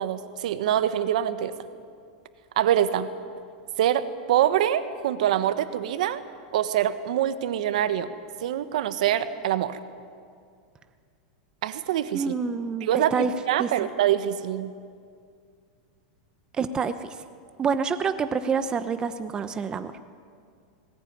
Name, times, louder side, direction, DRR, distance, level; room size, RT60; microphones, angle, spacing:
voice 1, 0.0-1.5 2.6-3.1 3.8-6.2 6.5-8.1 8.4-9.8 11.6-12.3 12.8-14.7, right 11 dB, 75° right, 12 dB, 1.3 m, -25 dB
voice 2, 12.1-13.3 13.6-13.7 16.5-17.1 17.6-19.9, right 5 dB, 20° right, 10 dB, 0.9 m, -27 dB
20.0 x 19.5 x 9.5 m, 2.2 s
supercardioid pair, 140°, 4 cm